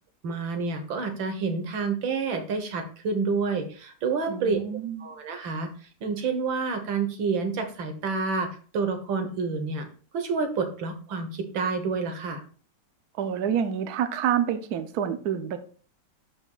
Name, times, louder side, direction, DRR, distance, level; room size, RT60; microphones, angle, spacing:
voice 1, 0.2-4.6 5.0-5.7 6.0-9.9 10.1-12.4, right 4 dB, 90° right, 6 dB, 2.1 m, -28 dB
voice 2, 4.3-5.0 13.2-15.6, right 9 dB, 65° right, 8 dB, 1.2 m, -27 dB
12.0 x 5.2 x 2.4 m, 0.41 s
omnidirectional pair, 2.0 m